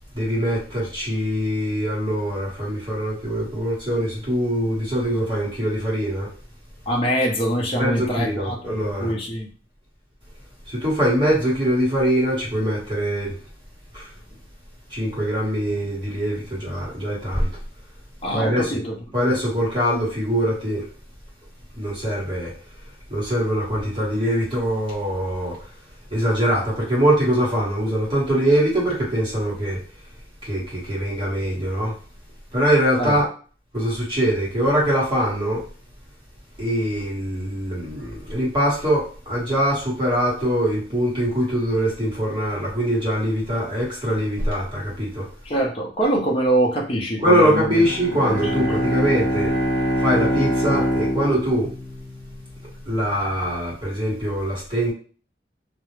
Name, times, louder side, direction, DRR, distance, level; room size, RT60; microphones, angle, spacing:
voice 1, 0.1-6.3 7.7-9.1 10.7-13.3 13.9-14.1 14.9-17.5 18.3-18.8 19.1-20.8 21.8-22.5 23.1-25.6 26.1-29.8 30.4-31.9 32.5-33.2 33.7-35.6 36.6-45.2 47.2-49.5 50.0-51.7 52.9-54.9, equal, 25° right, -5 dB, 1.2 m, -23 dB
voice 2, 6.9-9.5 18.2-19.0 19.3-19.4 33.0-33.2 45.4-47.8 48.5-48.6, right 1 dB, 30° left, -1 dB, 0.6 m, -24 dB
Bowed string instrument, 47.7-52.5, equal, 65° right, 0.9 m, -24 dB
2.4 x 2.0 x 3.0 m, 0.39 s
head